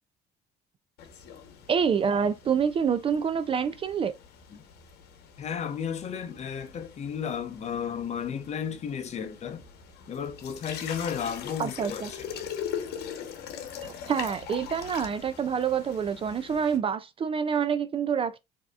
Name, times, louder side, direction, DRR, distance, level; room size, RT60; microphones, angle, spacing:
sound 1, 1.0-16.8, left 8 dB, 75° left, 0.9 m, -42 dB
voice 1, 1.7-4.1 11.6-12.1 13.8-18.4, right 7 dB, 35° right, 0.3 m, -27 dB
voice 2, 5.4-9.6 10.1-12.5, left 7 dB, 40° left, 0.7 m, -34 dB
4.6 x 2.8 x 2.3 m
cardioid pair, 110°, 17 cm